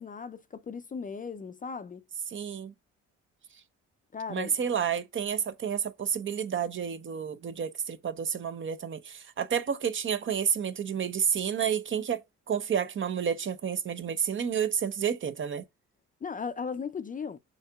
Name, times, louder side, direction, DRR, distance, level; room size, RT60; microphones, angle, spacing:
voice 1, 0.0-2.0 4.1-4.5 16.2-17.4, left 5 dB, 30° left, 0.4 m, -37 dB
voice 2, 2.3-2.7 4.3-12.2 12.5-15.6, right 8 dB, 40° right, 0.6 m, -30 dB
6.2 x 2.8 x 2.3 m
cardioid pair, 90°, 30 cm